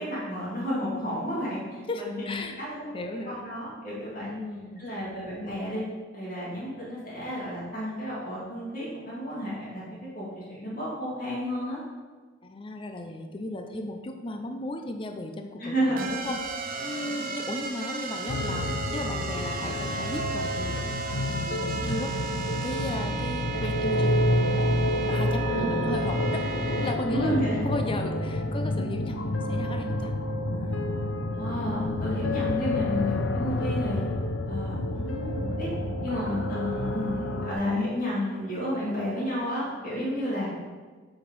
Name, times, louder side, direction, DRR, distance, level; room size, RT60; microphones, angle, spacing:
voice 1, 0.0-2.8 3.3-4.3 4.8-5.8 6.1-9.9 10.1-11.8 15.6-16.1 17.0-17.2 21.7-21.9 25.5-25.8 27.1-27.6 31.3-34.0 34.5-35.7 36.0-40.5, equal, 45° left, -8 dB, 2.5 m, -31 dB
voice 2, 1.9-2.6 2.9-3.4 4.2-5.0 12.4-16.4 16.8-20.8 21.4-22.1 22.6-27.4 27.6-30.1 30.4-31.0, left 1 dB, 25° left, 5 dB, 0.5 m, -36 dB
sound 1, 16.0-26.9, right 3 dB, 50° right, 0.7 m, -34 dB
sound 2, 18.3-37.5, left 1 dB, 80° left, 0.7 m, -29 dB
7.7 x 5.1 x 5.3 m, 1.4 s
head